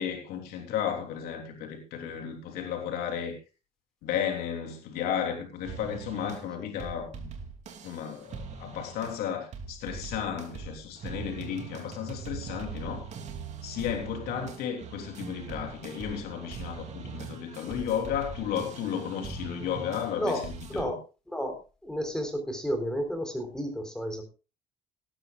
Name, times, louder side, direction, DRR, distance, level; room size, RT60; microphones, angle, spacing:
voice 1, 0.0-3.4 4.0-7.3 7.8-13.1 13.6-21.0, left 8 dB, 85° left, 3.5 m, -33 dB
sound 1, 5.6-6.5 6.8-9.3 9.5-20.8, right 6 dB, 45° right, 2.8 m, -41 dB
voice 2, 21.8-24.3, equal, 5° left, 3.8 m, -31 dB
18.5 x 12.5 x 2.4 m
cardioid pair, 145°, 16 cm